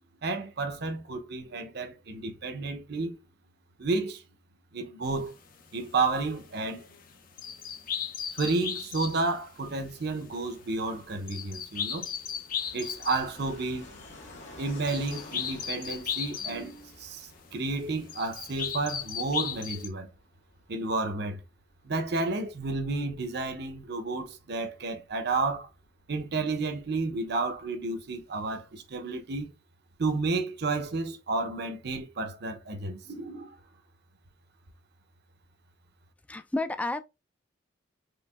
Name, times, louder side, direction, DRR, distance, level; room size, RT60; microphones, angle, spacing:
voice 1, 0.2-3.2 3.8-4.2 4.7-5.3 5.7-6.9 8.3-12.1 12.7-13.9 14.6-20.1 20.7-21.4 21.8-25.7 26.1-29.5 30.0-33.6, right 3 dB, 60° right, 0.7 m, -31 dB
sound 1, 5.1-5.2 5.6-5.7 6.1-9.3 9.6-17.0 17.4-17.7 18.0-19.9, left 8 dB, 50° left, 0.6 m, -36 dB
Fixed-wing aircraft airplane, 10.3-28.7, left 2 dB, 75° left, 1.6 m, -53 dB
voice 2, 36.3-37.0, left 2 dB, 10° left, 0.3 m, -30 dB
4.5 x 3.0 x 2.3 m
head